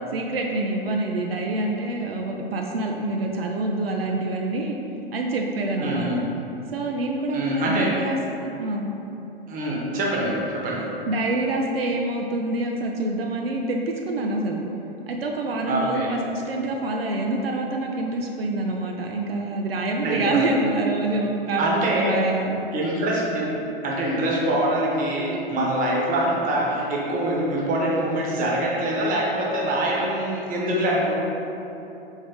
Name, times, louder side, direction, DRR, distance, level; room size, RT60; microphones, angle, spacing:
voice 1, 0.1-4.8 5.1-6.1 6.7-8.2 8.6-8.9 11.1-13.8 14.1-14.6 15.1-22.6, right 2 dB, 85° right, 1 dB, 0.5 m, -26 dB
voice 2, 5.8-6.3 7.3-7.9 9.5-10.8 15.7-16.1 20.0-20.4 21.6-22.1 22.7-31.1, right 1 dB, 30° right, -3 dB, 1.0 m, -24 dB
4.4 x 3.5 x 3.4 m, 3.0 s
figure-of-eight pair, 100°, 29 cm